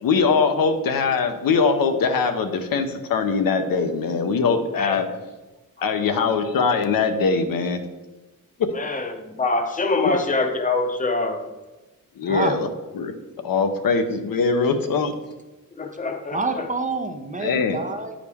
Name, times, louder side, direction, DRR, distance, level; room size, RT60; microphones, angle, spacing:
voice 1, 0.0-5.0 5.8-7.8 12.2-12.7 12.9-13.1 13.4-15.1 17.4-17.8, left 5 dB, 75° left, 7 dB, 0.7 m, -22 dB
voice 2, 8.7-11.4 15.7-16.7, left 3 dB, 25° left, 5 dB, 0.7 m, -25 dB
voice 3, 12.2-12.6 16.3-18.1, right 3 dB, 25° right, 6 dB, 0.4 m, -27 dB
9.6 x 5.0 x 3.4 m, 1.1 s
wide cardioid pair, 165°, 35 cm